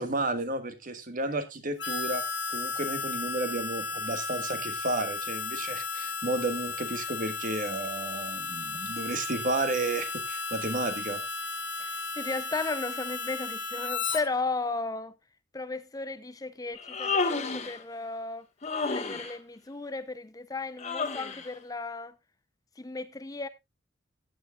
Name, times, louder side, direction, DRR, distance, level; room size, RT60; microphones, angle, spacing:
voice 1, 0.0-2.2 2.5-11.2, right 2 dB, 45° right, 1.5 m, -32 dB
Harmonica, 1.8-14.2, left 4 dB, 70° left, 1.9 m, -34 dB
voice 2, 11.8-15.1 15.5-18.5 18.9-22.1 22.8-23.5, left 3 dB, 20° left, 0.5 m, -35 dB
Human voice, 16.7-17.8 18.6-19.4 20.8-21.5, left 4 dB, 35° left, 1.4 m, -31 dB
15.5 x 9.3 x 2.3 m
head